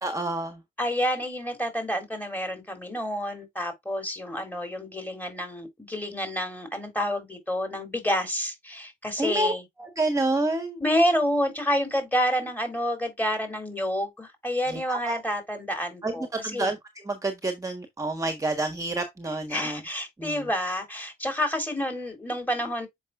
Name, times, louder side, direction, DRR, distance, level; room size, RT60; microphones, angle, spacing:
voice 1, 0.0-0.6 9.2-9.5 9.8-10.8 14.7-15.2 16.0-16.8 17.0-19.8 20.2-20.4, right 2 dB, 15° right, 1.3 m, -28 dB
voice 2, 0.8-9.6 10.8-16.7 19.5-22.9, equal, 10° left, 3.6 m, -28 dB
7.3 x 5.6 x 2.5 m
cardioid pair, 90°, 20 cm